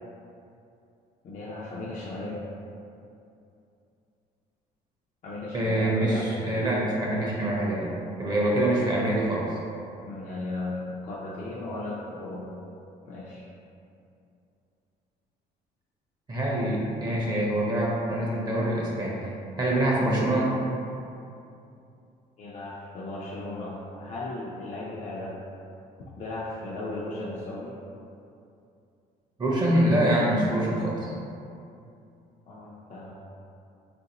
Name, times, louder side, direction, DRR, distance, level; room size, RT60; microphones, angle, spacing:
voice 1, 1.2-2.4 5.2-6.3 10.0-12.5 13.0-13.4 22.4-25.4 26.2-27.7 32.5-33.1, left 2 dB, 45° left, -7 dB, 0.5 m, -36 dB
voice 2, 5.5-9.5 16.3-19.1 19.6-20.5 29.4-31.1, right 1 dB, 25° right, -5 dB, 0.6 m, -25 dB
3.6 x 2.5 x 2.8 m, 2.6 s
cardioid pair, 110°, 17 cm